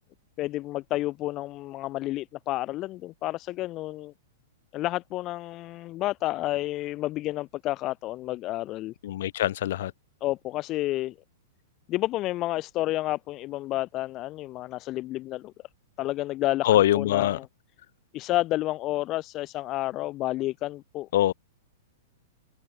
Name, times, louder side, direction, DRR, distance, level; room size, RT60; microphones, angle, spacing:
voice 1, 0.4-4.1 4.7-8.9 10.2-11.1 11.9-15.5 16.0-17.5 18.1-21.1, left 16 dB, 35° left, 3.4 m, -30 dB
voice 2, 9.0-9.9 16.6-17.4 21.1-21.3, left 13 dB, 55° left, 7.2 m, -23 dB
open air
figure-of-eight pair, 105°, 0 cm